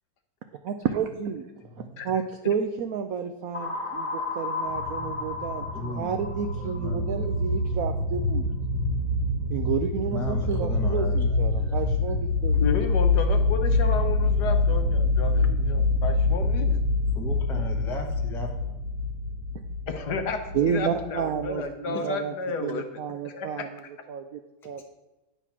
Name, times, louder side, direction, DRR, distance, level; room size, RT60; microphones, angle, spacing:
voice 1, 0.6-1.5 1.8-8.5 9.5-12.6 20.5-22.3 22.6-23.8 24.1-24.8, right 7 dB, 80° right, 6 dB, 0.8 m, -31 dB
voice 2, 1.6-2.0 5.7-7.3 7.7-7.8 10.1-12.3 17.1-18.8, left 2 dB, 5° left, 1 dB, 0.4 m, -37 dB
sound 1, 3.5-7.4, left 3 dB, 40° left, 0.8 m, -34 dB
sound 2, 4.7-21.7, left 2 dB, 55° right, 1.9 m, -26 dB
voice 3, 12.6-16.7 19.9-22.8 23.2-23.6, left 4 dB, 65° left, 6 dB, 1.2 m, -32 dB
10.0 x 4.2 x 5.9 m, 1.0 s
omnidirectional pair, 2.1 m